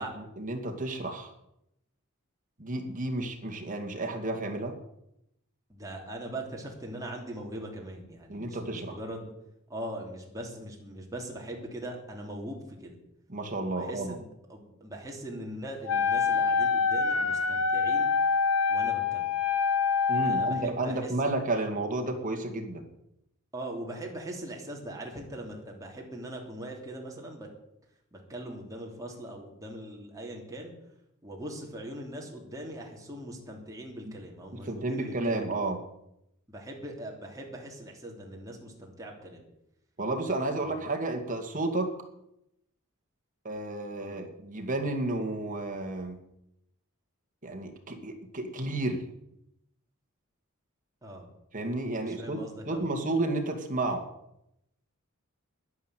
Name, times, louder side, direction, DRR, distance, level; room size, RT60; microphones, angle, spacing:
voice 1, 0.0-1.3 2.6-4.7 8.3-9.0 13.3-14.1 20.1-22.8 34.5-35.8 40.0-42.0 43.4-46.2 47.4-49.0 51.5-52.4 52.7-54.1, right 2 dB, 40° right, 4 dB, 2.2 m, -32 dB
voice 2, 5.7-9.3 9.7-13.0 13.7-18.1 18.7-19.3 20.1-21.3 23.5-27.5 28.1-30.7 31.2-35.5 36.5-39.4 40.6-40.8 44.0-44.3 51.0-51.3 52.0-52.9, right 1 dB, 15° right, -1 dB, 3.3 m, -41 dB
Wind instrument woodwind instrument, 15.9-20.7, left 5 dB, 85° left, 1.0 m, -26 dB
11.0 x 11.0 x 9.2 m, 0.82 s
head